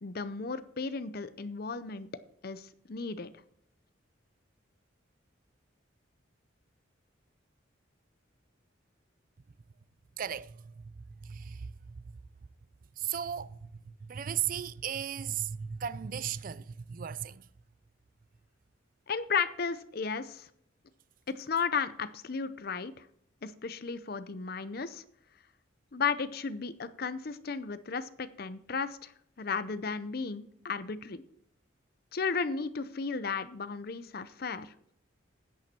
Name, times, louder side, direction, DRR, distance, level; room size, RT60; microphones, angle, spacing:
voice 1, 0.0-2.1 2.4-3.3 19.1-20.5 21.3-23.1 23.4-25.0 25.9-29.1 29.4-31.2 32.1-34.7, left 5 dB, 50° left, 0.6 m, -34 dB
voice 2, 10.2-12.2 13.0-17.5, right 9 dB, 45° right, 0.4 m, -37 dB
10.5 x 9.0 x 4.4 m
head